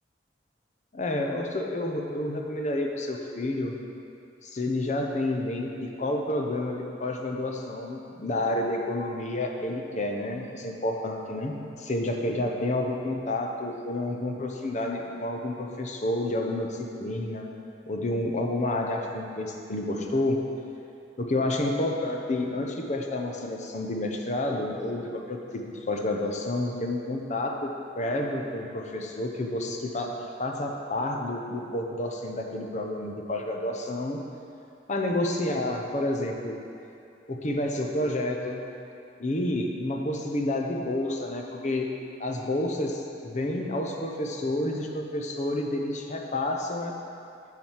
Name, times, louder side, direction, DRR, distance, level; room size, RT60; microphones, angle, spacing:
voice 1, 0.9-3.7 4.4-17.5 17.9-20.4 21.2-34.2 34.9-36.6 37.3-38.6 39.2-41.9 42.2-47.0, left 1 dB, 40° left, 2 dB, 0.9 m, -29 dB
7.5 x 5.9 x 7.4 m, 2.7 s
head